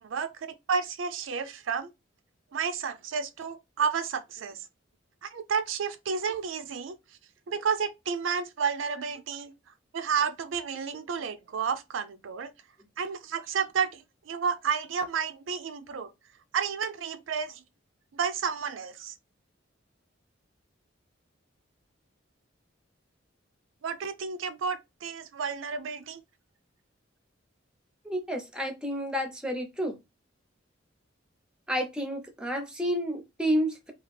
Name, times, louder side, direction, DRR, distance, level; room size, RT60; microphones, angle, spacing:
voice 1, 0.0-1.9 2.5-4.7 5.2-7.0 7.5-9.5 9.9-12.5 13.0-16.1 16.5-17.6 18.1-19.1 23.8-26.2, right 6 dB, 85° right, 0.4 m, -31 dB
voice 2, 28.0-30.0 31.7-33.9, equal, 5° right, 0.6 m, -30 dB
2.8 x 2.4 x 3.1 m
head